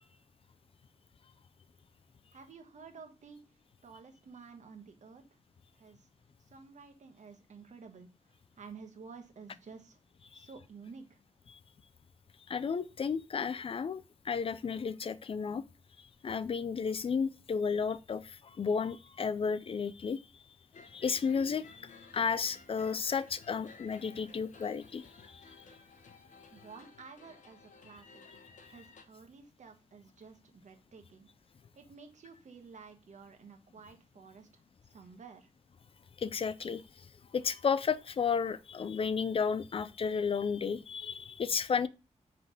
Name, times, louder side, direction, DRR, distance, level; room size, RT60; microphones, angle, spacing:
voice 1, 2.3-3.4 3.8-5.2 5.7-6.1 6.4-10.0 10.3-11.2 26.5-31.3 31.7-34.6 34.9-35.5, right 5 dB, 70° right, 1.2 m, -52 dB
voice 2, 12.5-15.6 16.2-20.2 20.9-25.4 36.2-36.8 37.3-41.9, left 6 dB, 45° left, 0.4 m, -33 dB
sound 1, 20.7-29.0, left 4 dB, 75° left, 0.9 m, -56 dB
5.9 x 3.3 x 5.2 m
wide cardioid pair, 150°, 13 cm